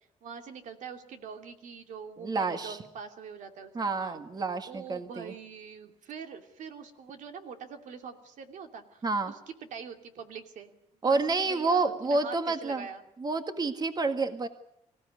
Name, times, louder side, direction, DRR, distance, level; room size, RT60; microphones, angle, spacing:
voice 1, 0.2-4.2 4.7-10.7 11.0-13.0, right 6 dB, 75° right, 6 dB, 2.8 m, -44 dB
voice 2, 2.2-2.8 3.8-5.3 9.0-9.3 11.0-12.9 13.2-14.5, right 3 dB, 30° right, 8 dB, 1.7 m, -29 dB
25.5 x 16.0 x 9.6 m, 0.79 s
cardioid pair, 110°, 13 cm